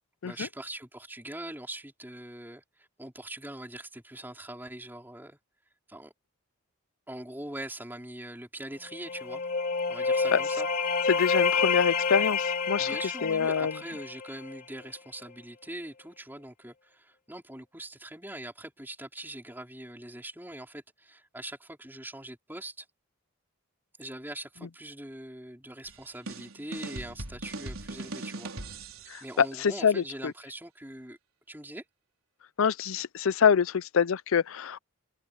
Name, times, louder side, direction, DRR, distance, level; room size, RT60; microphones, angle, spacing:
voice 1, 0.2-5.4 5.9-6.1 7.1-9.4 9.9-10.7 12.8-22.9 24.0-28.5 29.2-31.2 31.5-31.8, right 1 dB, 10° right, 4.7 m, -42 dB
sound 1, 8.9-14.6, left 5 dB, 40° left, 4.0 m, -28 dB
voice 2, 11.1-12.9 13.2-13.7 29.1-30.3 32.6-34.8, left 6 dB, 75° left, 0.5 m, -25 dB
sound 2, 25.9-29.3, right 2 dB, 75° right, 4.3 m, -40 dB
head